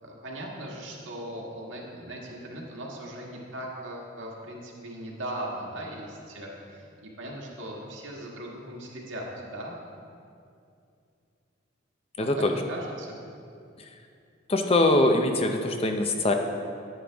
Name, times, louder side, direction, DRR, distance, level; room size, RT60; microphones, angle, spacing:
voice 1, 0.0-9.7 12.2-13.2, right 1 dB, 75° right, -2 dB, 1.7 m, -39 dB
voice 2, 12.2-12.5 13.8-13.9 14.5-16.3, left 1 dB, 30° left, 4 dB, 0.6 m, -23 dB
9.9 x 9.4 x 3.5 m, 2.5 s
head